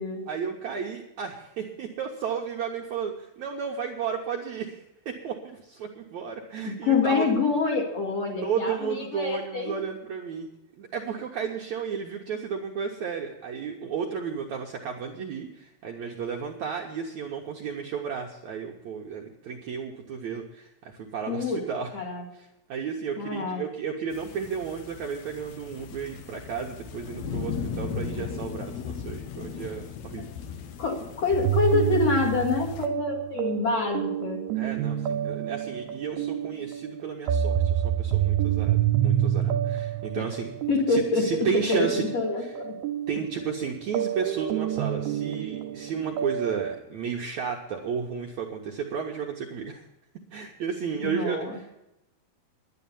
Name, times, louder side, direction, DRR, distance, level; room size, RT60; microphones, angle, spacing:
voice 1, 0.3-7.3 8.4-10.5 10.8-21.9 22.3-30.3 34.6-40.6 40.9-42.1 42.4-42.6 43.1-49.8 50.3-51.7, right 6 dB, 70° right, 0 dB, 1.9 m, -33 dB
voice 2, 6.6-9.7 21.3-21.6 21.9-22.2 23.2-23.6 30.8-34.4 40.1-40.2 40.7-42.7 51.0-51.6, left 4 dB, 45° left, -1 dB, 3.1 m, -26 dB
sound 1, 24.1-32.9, left 6 dB, 80° left, 1.5 m, -37 dB
sound 2, 31.3-46.8, right 10 dB, 85° right, 2.9 m, -28 dB
11.0 x 11.0 x 7.0 m, 0.91 s
omnidirectional pair, 4.5 m